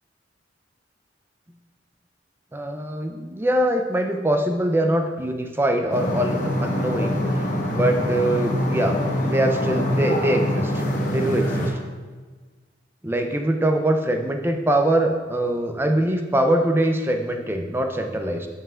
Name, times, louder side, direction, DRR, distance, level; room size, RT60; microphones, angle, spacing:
voice 1, 2.5-10.8 11.1-11.8 13.0-18.5, right 1 dB, 10° right, 4 dB, 0.5 m, -23 dB
sound 1, 5.9-11.7, equal, 45° left, 1.0 m, -24 dB
12.5 x 5.6 x 2.4 m, 1.4 s
head